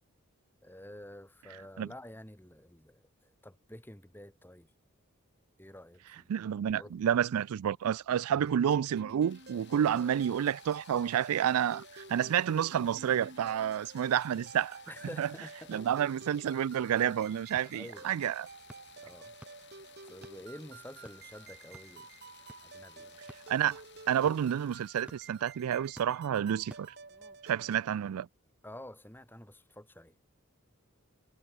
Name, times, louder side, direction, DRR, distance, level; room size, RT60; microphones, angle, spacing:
voice 1, 0.6-4.7 5.6-6.3 6.8-7.1 9.8-9.9 14.9-15.9 17.6-18.1 19.0-19.4 20.0-22.1 22.6-23.2 28.6-30.2, left 1 dB, 10° left, 4.0 m, -49 dB
voice 2, 6.3-14.8 15.2-15.3 15.7-18.5 23.5-23.8 24.1-26.9 27.4-28.3, right 9 dB, 90° right, 0.3 m, -29 dB
sound 1, 8.3-27.8, right 3 dB, 50° right, 2.8 m, -51 dB
sound 2, 9.3-27.0, left 8 dB, 55° left, 4.3 m, -58 dB
sound 3, 17.3-27.4, equal, 5° right, 5.8 m, -58 dB
head